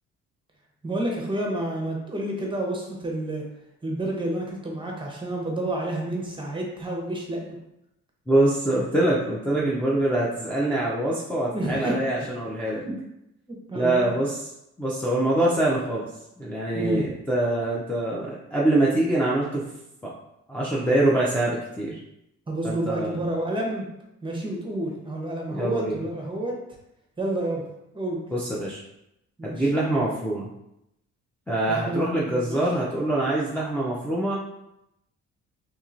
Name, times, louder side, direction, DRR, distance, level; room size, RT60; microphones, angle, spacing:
voice 1, 0.8-3.5 3.8-7.6 11.5-12.0 12.8-12.9 13.5-14.1 16.7-17.0 22.5-23.9 24.2-26.6 27.2-27.6 27.9-28.2 29.4-29.7 31.7-32.6, right 1 dB, 15° right, -1 dB, 0.8 m, -29 dB
voice 2, 8.3-12.8 13.7-14.5 14.8-16.1 16.4-19.6 20.5-22.0 22.6-23.2 25.5-26.0 28.3-28.8 29.4-30.5 31.5-34.4, right 1 dB, 5° left, -7 dB, 0.5 m, -24 dB
2.9 x 2.8 x 2.5 m, 0.85 s
cardioid pair, 90°, 30 cm